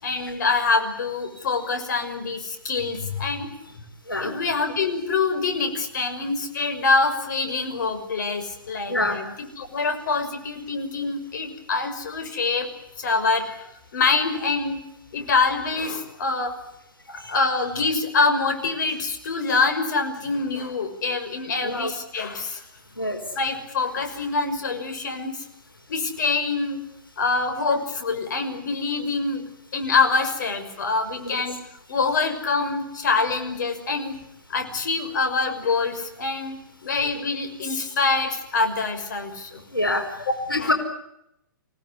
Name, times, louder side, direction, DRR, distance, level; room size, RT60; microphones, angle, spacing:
voice 1, 0.0-3.5 4.2-12.7 13.0-13.6 13.9-14.8 15.1-16.5 17.1-22.6 23.3-25.4 25.9-26.8 27.2-29.4 29.7-31.5 31.9-34.1 34.5-39.6 40.3-40.7, left 4 dB, 60° left, 7 dB, 6.0 m, -25 dB
voice 2, 39.7-40.0 40.5-40.7, left 1 dB, 90° left, 5 dB, 4.9 m, -24 dB
29.0 x 18.0 x 9.8 m, 0.80 s
figure-of-eight pair, 115°, 11 cm